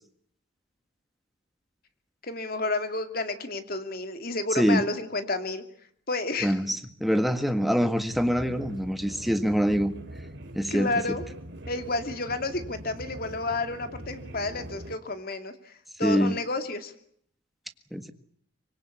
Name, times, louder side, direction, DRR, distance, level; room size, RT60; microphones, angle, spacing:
voice 1, 2.2-5.6 6.1-6.6 10.7-11.3 11.7-15.7 16.0-16.9, left 2 dB, 50° left, 2.6 m, -31 dB
voice 2, 6.4-9.9 10.5-10.9 16.0-16.3 17.9-18.1, equal, ahead, 1.6 m, -24 dB
sound 1, 8.1-14.9, right 1 dB, 65° right, 2.9 m, -42 dB
25.5 x 21.5 x 8.5 m
head